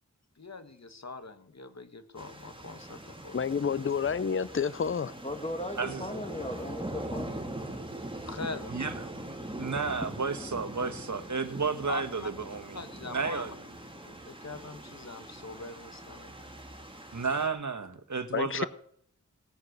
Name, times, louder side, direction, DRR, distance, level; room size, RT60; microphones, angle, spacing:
voice 1, 0.4-3.4 8.2-8.8 11.9-12.3 12.7-13.5 14.0-16.5, left 3 dB, 60° left, 1.5 m, -42 dB
sound 1, 2.2-17.5, right 1 dB, 15° right, 3.0 m, -42 dB
voice 2, 3.3-5.1 18.3-18.7, left 6 dB, 45° left, 0.6 m, -29 dB
voice 3, 5.2-7.4, left 1 dB, 20° left, 2.3 m, -37 dB
voice 4, 5.7-6.1 8.7-12.8 13.1-13.5 17.1-18.7, right 4 dB, 70° right, 1.5 m, -32 dB
18.0 x 9.6 x 6.6 m
wide cardioid pair, 65°, 30 cm